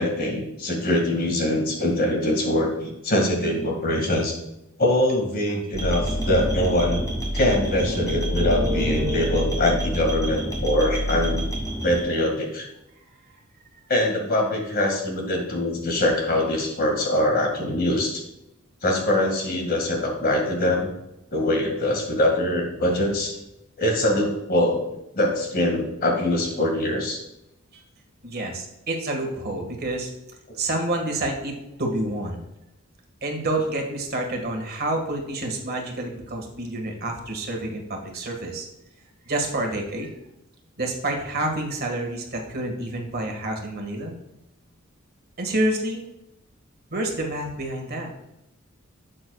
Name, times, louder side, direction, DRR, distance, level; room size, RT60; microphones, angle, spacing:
voice 1, 0.0-4.4 4.8-7.0 7.3-11.4 11.8-12.7 13.9-18.2 18.8-20.9 21.3-23.3 23.8-27.2, left 1 dB, 45° left, 1 dB, 2.0 m, -23 dB
sound 1, 5.7-12.0, equal, 15° left, 2.0 m, -27 dB
voice 2, 28.2-30.1 30.5-32.4 33.2-38.7 39.3-40.1 40.8-44.1 45.4-46.0 46.9-48.1, right 1 dB, 50° right, 2 dB, 1.8 m, -28 dB
12.0 x 7.8 x 2.3 m, 0.87 s
head